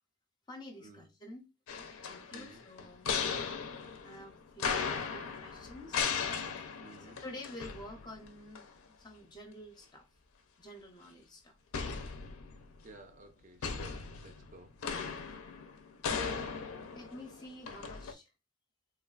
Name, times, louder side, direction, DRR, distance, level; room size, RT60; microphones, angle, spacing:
voice 1, 0.5-1.5 2.1-3.6 4.0-6.1 6.3-6.7 7.0-10.2 10.6-11.6 15.4-15.7 16.9-18.3, left 1 dB, 20° left, 0.4 m, -50 dB
sound 1, 1.7-8.3 8.5-8.7 11.7-12.8 13.6-18.1, left 6 dB, 75° left, 0.4 m, -37 dB
voice 2, 2.3-2.6 6.8-7.2 12.8-14.8, right 2 dB, 35° right, 0.4 m, -54 dB
3.3 x 2.3 x 2.3 m
head